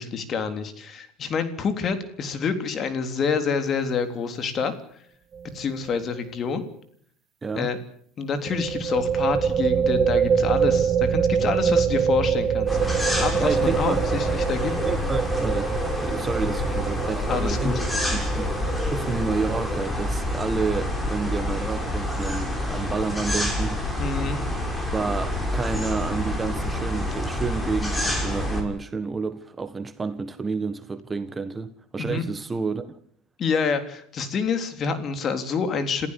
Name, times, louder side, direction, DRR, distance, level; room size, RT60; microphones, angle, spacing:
voice 1, 0.0-4.7 5.5-6.6 7.6-7.8 8.2-14.7 17.3-17.7 24.0-24.4 32.0-32.2 33.4-36.1, left 5 dB, 40° left, 3.6 m, -27 dB
sound 1, 5.3-5.6 5.9-6.0 8.5-19.8, right 7 dB, 35° right, 1.2 m, -25 dB
voice 2, 7.4-7.7 13.4-14.1 14.8-15.7 16.0-24.1 24.9-32.9, right 4 dB, 20° right, 1.6 m, -30 dB
sound 2, 12.7-28.6, left 1 dB, 10° left, 5.9 m, -27 dB
27.5 x 15.0 x 8.5 m
supercardioid pair, 115°, 0 cm